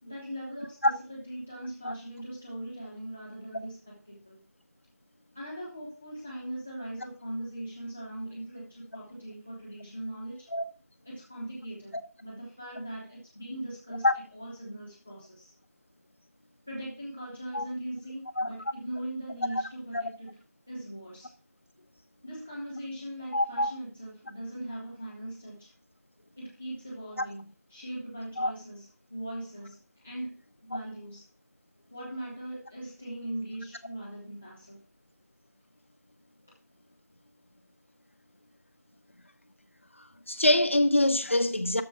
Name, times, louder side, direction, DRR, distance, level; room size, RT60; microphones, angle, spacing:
voice 1, 0.0-4.4 5.3-10.5 11.0-14.1 14.3-15.5 16.7-20.4 20.7-21.3 22.2-25.7 26.4-31.2 31.9-34.9, right 1 dB, 5° right, 0.7 m, -40 dB
voice 2, 23.3-23.7 28.4-28.5 40.3-41.8, left 1 dB, 50° left, 1.0 m, -24 dB
13.0 x 4.8 x 5.8 m
figure-of-eight pair, 180°, 9 cm